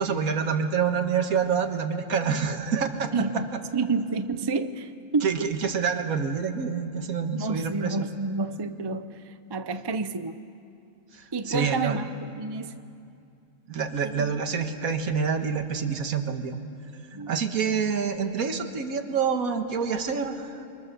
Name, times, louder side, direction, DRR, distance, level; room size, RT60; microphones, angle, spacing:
voice 1, 0.0-3.4 5.2-8.1 11.1-12.0 13.7-16.6 17.3-20.6, right 6 dB, 65° right, 6 dB, 1.8 m, -27 dB
voice 2, 3.1-5.3 7.3-9.1 9.5-10.4 11.3-12.8 14.0-14.3 17.1-17.3, right 3 dB, 35° right, 10 dB, 0.4 m, -29 dB
29.5 x 24.0 x 6.9 m, 2.5 s
omnidirectional pair, 1.6 m